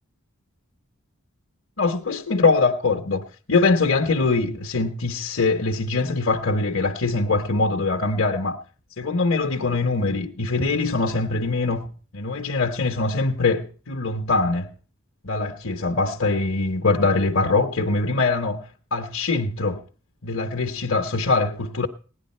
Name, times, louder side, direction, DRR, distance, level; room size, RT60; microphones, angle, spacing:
voice 1, 1.8-8.6 9.0-11.9 12.1-14.7 15.2-19.8 20.2-21.9, left 3 dB, 65° left, 1.1 m, -23 dB
17.5 x 10.5 x 4.3 m
head